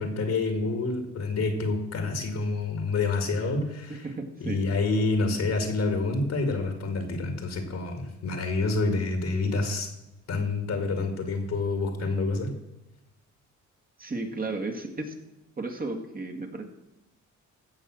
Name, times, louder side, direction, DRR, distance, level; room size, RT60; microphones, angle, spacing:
voice 1, 0.0-4.1 4.4-9.9 10.3-12.6, left 3 dB, 60° left, 6 dB, 2.1 m, -28 dB
voice 2, 3.9-4.6 14.0-15.1 15.6-16.6, right 2 dB, 30° right, 4 dB, 1.9 m, -34 dB
15.5 x 5.5 x 6.3 m, 0.95 s
cardioid pair, 90°, 30 cm